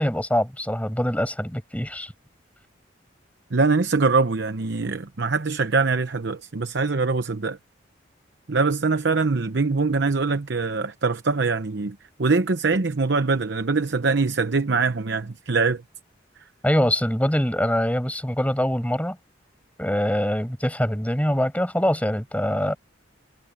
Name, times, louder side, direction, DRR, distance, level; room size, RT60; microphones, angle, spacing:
voice 1, 0.0-2.1 16.6-19.2 19.8-22.8, equal, 10° left, 5.3 m, -24 dB
voice 2, 3.5-7.6 8.5-15.8, right 4 dB, 65° right, 0.8 m, -23 dB
head